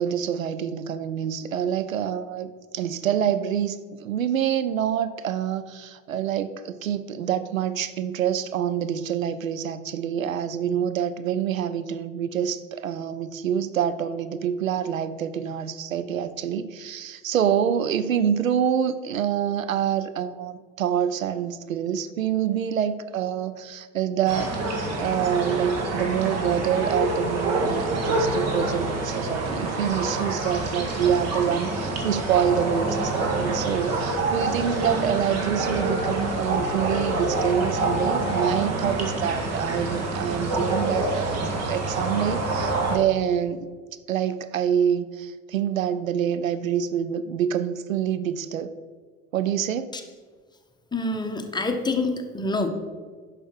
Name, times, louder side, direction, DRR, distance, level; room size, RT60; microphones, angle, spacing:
voice 1, 0.0-2.5 2.7-24.6 25.0-43.7 44.1-48.7 49.3-50.0, right 9 dB, 80° right, 13 dB, 0.6 m, -26 dB
sound 1, 24.3-43.0, right 2 dB, 40° right, 2.0 m, -27 dB
voice 2, 50.9-52.7, left 2 dB, 10° left, 5 dB, 1.1 m, -26 dB
10.5 x 6.2 x 4.6 m, 1.5 s
figure-of-eight pair, 70°, 40 cm